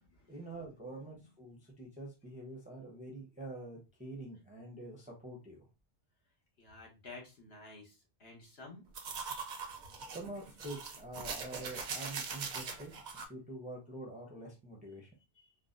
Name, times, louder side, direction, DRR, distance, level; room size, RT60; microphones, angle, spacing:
voice 1, 0.3-5.6 10.1-13.0 13.3-15.1, right 2 dB, 10° right, -1 dB, 0.5 m, -46 dB
voice 2, 6.6-7.9 8.2-8.8 15.3-15.5, left 3 dB, 65° left, -1 dB, 1.3 m, -51 dB
sound 1, 8.9-13.3, right 5 dB, 55° right, 0.6 m, -41 dB
3.9 x 2.1 x 2.5 m, 0.27 s
omnidirectional pair, 1.2 m